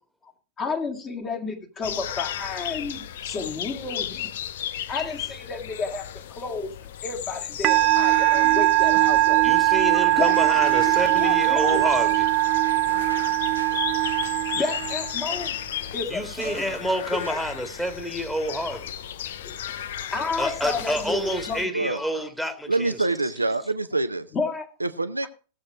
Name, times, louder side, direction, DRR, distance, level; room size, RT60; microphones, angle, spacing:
voice 1, 0.6-4.3 4.9-6.7 7.0-9.4 10.2-11.9 14.5-15.5 15.9-16.8 17.1-17.4 19.4-19.5 20.1-21.9 24.3-24.6, left 4 dB, 25° left, 2.5 m, -31 dB
sound 1, 1.8-21.7, left 10 dB, 60° left, 0.6 m, -35 dB
Musical instrument, 7.6-15.3, right 18 dB, 40° right, 0.6 m, -21 dB
voice 2, 9.4-12.3 16.1-18.9 20.4-23.0, equal, 5° left, 1.9 m, -28 dB
sound 2, 10.3-12.4 12.6-17.6, equal, 85° left, 1.7 m, -44 dB
voice 3, 22.7-24.3 24.8-25.3, right 2 dB, 80° right, 0.6 m, -25 dB
16.5 x 7.5 x 4.8 m
figure-of-eight pair, 90°, 0 cm